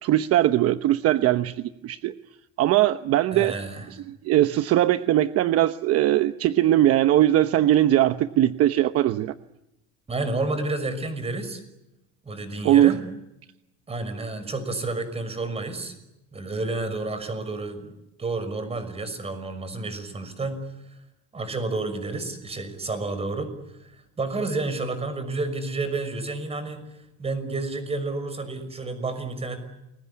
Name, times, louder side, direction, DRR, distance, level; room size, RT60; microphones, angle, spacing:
voice 1, 0.0-2.1 2.6-3.5 4.1-9.3 12.6-13.0, right 13 dB, 55° right, 10 dB, 1.0 m, -20 dB
voice 2, 3.3-3.9 10.1-11.6 12.2-13.0 13.9-15.9 16.3-20.6 20.9-21.0 21.3-23.5 23.8-26.8 27.2-29.6, right 3 dB, 20° right, 11 dB, 6.0 m, -30 dB
29.5 x 22.0 x 8.5 m, 0.92 s
cardioid pair, 130°, 30 cm